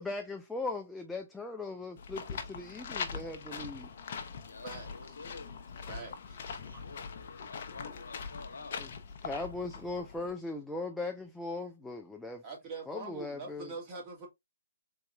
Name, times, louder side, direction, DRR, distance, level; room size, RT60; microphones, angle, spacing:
voice 1, 0.0-3.9 8.8-8.9 9.2-12.4 12.9-13.7, left 3 dB, 5° left, 0.3 m, -39 dB
sound 1, 2.0-10.3, left 6 dB, 50° left, 0.7 m, -42 dB
voice 2, 4.4-5.5 6.6-8.8, left 3 dB, 75° left, 1.0 m, -49 dB
voice 3, 5.8-6.5 6.7-6.8 12.4-14.3, right 4 dB, 25° right, 1.7 m, -43 dB
4.0 x 3.5 x 2.2 m
figure-of-eight pair, 140°, 0 cm